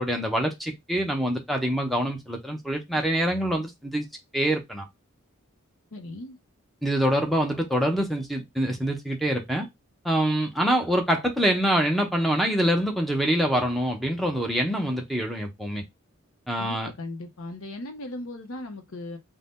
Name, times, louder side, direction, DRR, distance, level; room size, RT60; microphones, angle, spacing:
voice 1, 0.0-4.1 4.3-4.9 6.8-9.7 10.0-15.8 16.5-16.9, equal, ahead, 0.6 m, -25 dB
voice 2, 5.9-6.4 16.6-19.2, left 2 dB, 75° left, 0.7 m, -37 dB
2.6 x 2.1 x 3.4 m
head